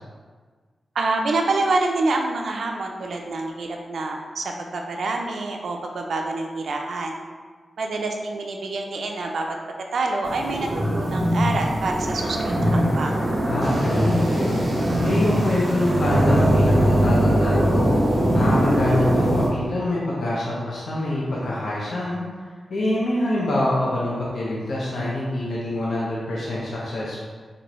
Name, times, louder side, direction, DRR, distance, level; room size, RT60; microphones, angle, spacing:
voice 1, 0.9-7.2 7.8-9.6 9.9-13.1, right 3 dB, 80° right, 2 dB, 0.4 m, -26 dB
sound 1, 10.2-19.5, right 1 dB, 55° right, 0.9 m, -21 dB
voice 2, 13.5-18.0 18.3-22.2 22.7-27.2, left 1 dB, 75° left, -6 dB, 0.7 m, -25 dB
4.2 x 2.6 x 3.0 m, 1.5 s
wide cardioid pair, 100°, 0 cm